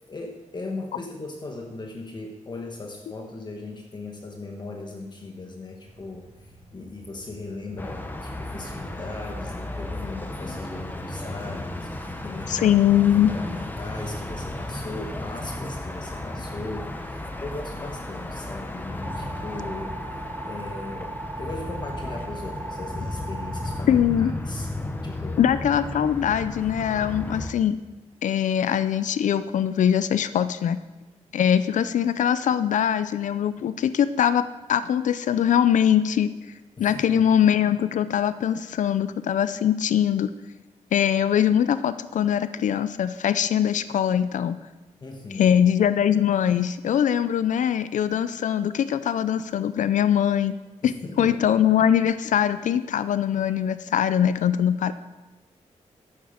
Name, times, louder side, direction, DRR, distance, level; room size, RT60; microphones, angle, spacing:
voice 1, 0.0-12.8 13.0-20.0 20.5-24.7 25.0-25.4 36.8-37.2 45.0-45.6 50.8-51.3, left 2 dB, 35° left, 2 dB, 1.2 m, -38 dB
sound 1, 5.8-11.3, right 2 dB, 65° right, 2.4 m, -50 dB
sound 2, 7.8-27.5, left 1 dB, 15° left, 0.9 m, -34 dB
voice 2, 12.5-13.3 23.9-24.3 25.4-27.8 28.2-30.8 31.3-36.3 36.8-40.3 40.9-44.6 45.3-50.5 50.8-50.9 51.2-54.9, left 9 dB, 90° left, 13 dB, 0.4 m, -22 dB
sound 3, 19.0-23.8, right 2 dB, 20° right, 0.4 m, -38 dB
11.5 x 8.7 x 5.1 m, 1.2 s
wide cardioid pair, 135°, 13 cm